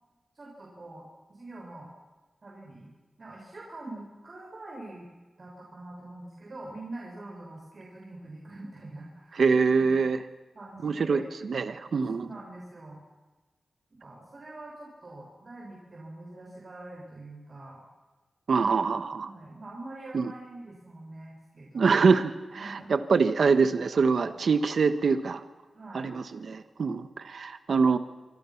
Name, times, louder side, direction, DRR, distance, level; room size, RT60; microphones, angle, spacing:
voice 1, 0.3-1.9 2.4-2.9 3.2-5.1 5.4-9.9 10.5-11.2 12.2-13.0 14.0-17.8 19.2-22.0 22.5-23.0 24.2-24.4 25.7-26.1, right 2 dB, 45° right, -3 dB, 6.3 m, -44 dB
voice 2, 9.4-10.2 10.8-12.3 18.5-19.3 20.1-20.3 21.7-25.4 25.9-28.0, right 5 dB, 70° right, 10 dB, 1.4 m, -24 dB
27.0 x 25.5 x 6.0 m, 1.2 s
wide cardioid pair, 90°, 0 cm